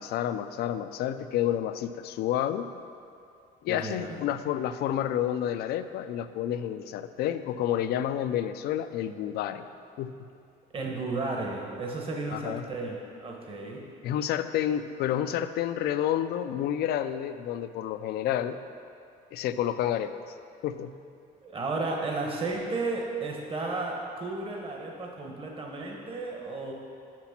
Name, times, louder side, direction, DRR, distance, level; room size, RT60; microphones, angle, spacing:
voice 1, 0.0-2.7 3.6-9.7 10.0-10.3 12.3-12.7 13.8-18.6 19.3-20.3 20.6-20.9, left 10 dB, 70° left, 11 dB, 0.4 m, -30 dB
voice 2, 3.7-4.2 10.7-13.8 21.4-26.7, right 3 dB, 35° right, 0 dB, 1.0 m, -33 dB
6.0 x 5.9 x 5.8 m, 2.5 s
cardioid pair, 110°, 17 cm